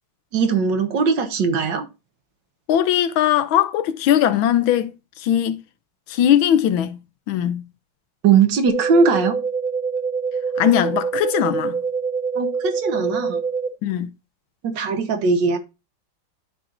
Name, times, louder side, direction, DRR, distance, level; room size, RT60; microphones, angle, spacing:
voice 1, 0.3-1.9 8.2-9.4 12.4-13.4 14.6-15.6, right 5 dB, 65° right, 1.7 m, -19 dB
voice 2, 2.7-4.9 5.2-5.6 6.1-7.0 7.3-7.6 10.6-11.7 13.8-14.1, left 10 dB, 85° left, 1.5 m, -19 dB
sound 1, 8.7-13.7, right 5 dB, 85° right, 2.0 m, -25 dB
12.0 x 4.4 x 2.5 m
omnidirectional pair, 2.1 m